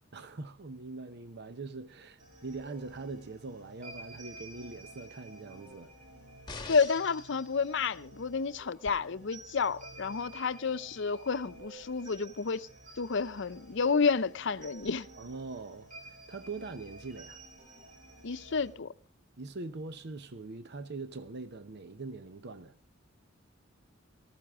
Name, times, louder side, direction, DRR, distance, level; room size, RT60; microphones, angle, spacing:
voice 1, 0.1-5.9 15.2-17.4 19.4-22.8, right 3 dB, 60° right, 0.8 m, -42 dB
sound 1, 2.2-18.7, right 2 dB, 40° right, 5.0 m, -52 dB
sound 2, 6.5-7.3 8.9-9.0, left 4 dB, 25° left, 1.6 m, -43 dB
voice 2, 6.7-12.7 13.0-15.1 18.2-18.9, left 5 dB, 65° left, 0.7 m, -30 dB
18.5 x 14.0 x 3.5 m
head